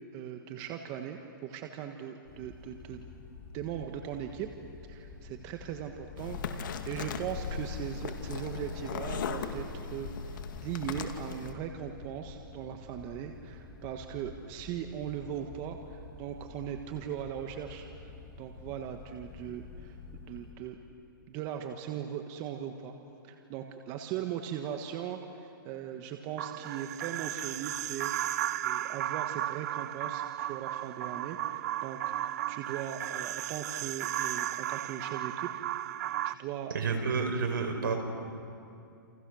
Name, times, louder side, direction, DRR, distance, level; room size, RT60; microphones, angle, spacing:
voice 1, 0.1-3.0 3.5-4.5 4.9-18.1 18.4-20.8 21.3-22.9 23.2-28.1 28.6-35.5 36.2-36.7, right 9 dB, 30° right, 5 dB, 1.5 m, -39 dB
sound 1, 2.3-20.5, left 3 dB, 35° left, 3.5 m, -49 dB
sound 2, 6.2-11.5, left 6 dB, 65° left, 2.2 m, -37 dB
sound 3, 26.4-36.3, right 13 dB, 50° right, 0.6 m, -35 dB
voice 2, 36.7-38.0, right 5 dB, 75° right, 3 dB, 5.5 m, -30 dB
29.0 x 28.5 x 6.4 m, 2.5 s
hypercardioid pair, 150°, 11 cm